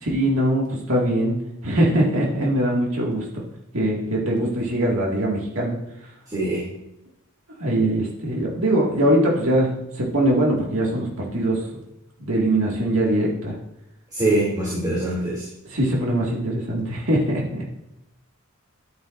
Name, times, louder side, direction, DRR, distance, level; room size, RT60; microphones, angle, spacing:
voice 1, 0.0-3.3 3.7-5.8 7.6-11.7 12.2-13.6 15.6-17.7, right 1 dB, 65° right, -3 dB, 2.1 m, -22 dB
voice 2, 6.3-6.7 14.1-15.5, right 1 dB, 20° right, -6 dB, 2.7 m, -23 dB
11.0 x 9.9 x 2.6 m, 0.87 s
head